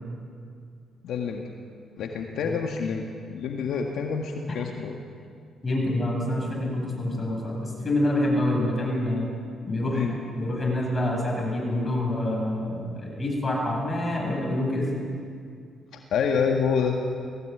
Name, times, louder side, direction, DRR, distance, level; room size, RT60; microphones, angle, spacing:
voice 1, 1.0-1.5 2.0-3.1 3.3-5.0 9.9-10.1 15.9-17.0, left 6 dB, 75° left, 2 dB, 1.8 m, -27 dB
voice 2, 5.6-9.3 9.7-14.9, left 1 dB, 25° left, -1 dB, 8.0 m, -27 dB
20.0 x 16.5 x 9.7 m, 2.3 s
cardioid pair, 90°, 0 cm